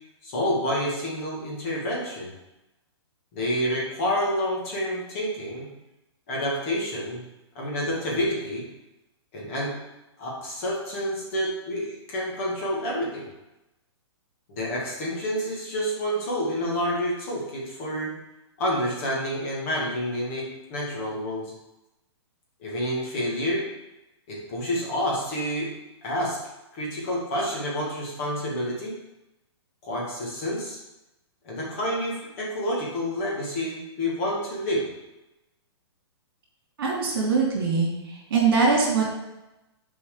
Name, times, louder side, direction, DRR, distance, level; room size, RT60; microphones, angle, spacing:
voice 1, 0.2-2.3 3.3-5.7 6.3-7.2 7.6-8.7 9.3-9.7 10.2-13.3 14.5-18.1 18.6-21.5 22.6-23.7 24.3-25.7 26.0-26.4 26.7-28.9 29.8-30.8 31.4-34.9, equal, 30° left, -4 dB, 2.0 m, -28 dB
voice 2, 36.8-37.9 38.3-39.2, right 4 dB, 55° right, -2 dB, 3.1 m, -22 dB
6.9 x 4.7 x 6.7 m, 0.97 s
hypercardioid pair, 170°, 14 cm